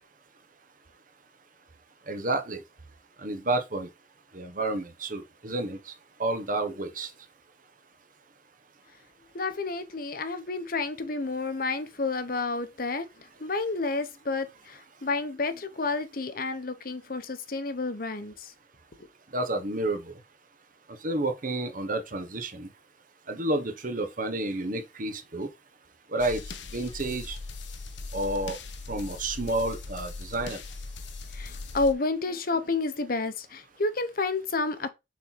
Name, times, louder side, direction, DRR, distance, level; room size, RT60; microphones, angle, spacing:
voice 1, 2.1-2.6 3.2-3.9 4.3-5.9 6.2-7.1 19.3-20.1 21.0-22.7 23.3-25.5 26.1-26.4 26.7-27.4 28.1-28.6 28.9-30.6, right 2 dB, 50° right, 1.1 m, -30 dB
voice 2, 9.3-13.1 13.4-18.5 31.3-34.9, left 3 dB, 50° left, 0.9 m, -30 dB
sound 1, 26.2-31.9, left 3 dB, 85° left, 1.0 m, -39 dB
6.5 x 4.2 x 4.1 m
head